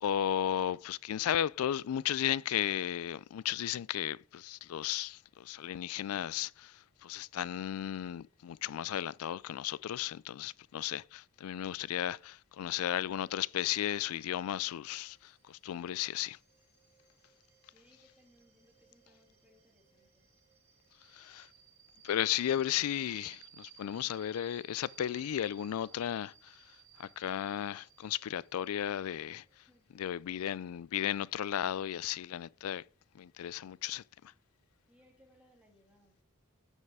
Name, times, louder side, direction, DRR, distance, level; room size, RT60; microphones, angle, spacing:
voice 1, 0.0-6.7 7.0-16.4 21.1-21.5 22.0-26.5 27.0-29.4 29.9-32.8 33.2-34.0, left 10 dB, 85° left, 0.3 m, -34 dB
sound 1, 14.9-31.2, right 8 dB, 70° right, 4.1 m, -61 dB
voice 2, 17.7-20.3 29.7-29.9 34.9-36.1, equal, 5° right, 2.4 m, -66 dB
9.4 x 5.5 x 4.8 m
head